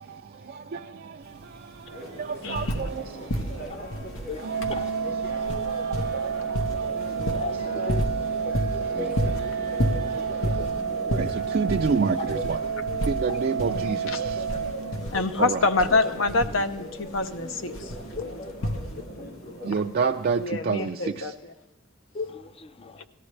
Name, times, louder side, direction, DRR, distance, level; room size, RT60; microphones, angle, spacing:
voice 1, 0.0-10.8 11.1-12.6 13.1-14.5 15.4-15.7 19.6-21.3, right 5 dB, 45° right, 0.4 m, -31 dB
sound 1, 1.2-1.3 1.6-3.0 3.3-19.3 20.3-20.4, equal, 85° left, 1.1 m, -32 dB
Church bell, 1.9-20.2, right 1 dB, 55° left, 3.1 m, -39 dB
voice 2, 2.4-2.8 13.7-14.2 15.1-17.9 20.4-21.5, left 3 dB, 70° left, 0.7 m, -26 dB
voice 3, 4.3-4.9 7.3-8.3 12.2-12.4 13.3-13.4 14.5-14.6 15.2-15.3 18.2-18.5 19.0-19.1 20.8-20.9 22.1-23.1, left 4 dB, 30° left, 0.4 m, -37 dB
Organ, 4.4-15.4, right 6 dB, 75° right, 0.7 m, -30 dB
17.5 x 13.0 x 3.2 m
head